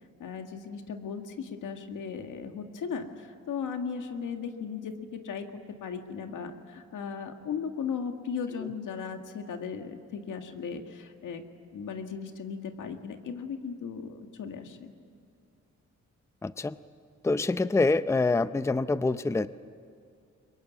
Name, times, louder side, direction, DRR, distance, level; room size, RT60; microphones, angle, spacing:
voice 1, 0.2-5.5 5.8-11.4 11.7-14.9, left 6 dB, 85° left, 5 dB, 1.9 m, -37 dB
voice 2, 16.4-16.8 17.2-19.5, left 3 dB, 10° left, 14 dB, 0.5 m, -26 dB
23.0 x 23.0 x 9.5 m, 2.3 s
cardioid pair, 100°, 30 cm